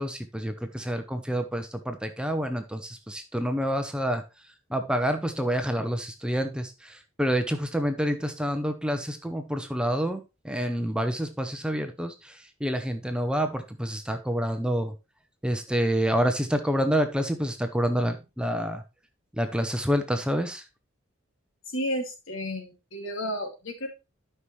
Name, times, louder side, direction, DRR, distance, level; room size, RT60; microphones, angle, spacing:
voice 1, 0.0-4.2 4.7-14.9 15.4-18.8 19.3-20.6, equal, 5° right, 7 dB, 0.7 m, -28 dB
voice 2, 21.7-23.9, equal, 70° left, 3 dB, 2.4 m, -32 dB
12.0 x 5.6 x 3.1 m, 0.27 s
head